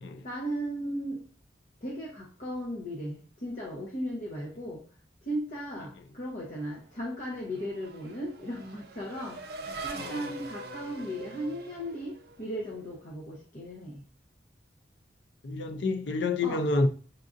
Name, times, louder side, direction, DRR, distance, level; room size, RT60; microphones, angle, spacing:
voice 1, 0.2-1.2 1.8-4.8 5.2-14.0 16.4-16.7, equal, 45° left, 0.8 m, -36 dB
Race car auto racing / Accelerating revving vroom, 6.8-12.8, right 3 dB, 55° right, 0.5 m, -43 dB
voice 2, 9.7-10.3 15.4-16.9, left 3 dB, 75° left, 0.5 m, -29 dB
7.2 x 2.5 x 2.5 m
head